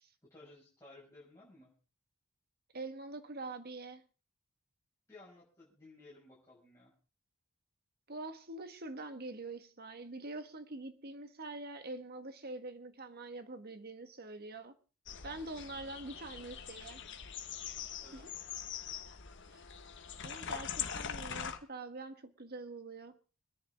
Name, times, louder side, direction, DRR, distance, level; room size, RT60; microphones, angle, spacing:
voice 1, 0.2-1.7 5.1-6.9 18.0-18.3, left 2 dB, 15° left, 5.6 m, -57 dB
voice 2, 2.7-4.0 8.1-14.7 15.2-17.0 18.1-18.3 19.5-19.6 20.2-23.2, right 2 dB, 45° right, 1.4 m, -45 dB
sound 1, 15.1-21.6, left 7 dB, 55° left, 1.3 m, -43 dB
24.5 x 10.5 x 3.5 m
head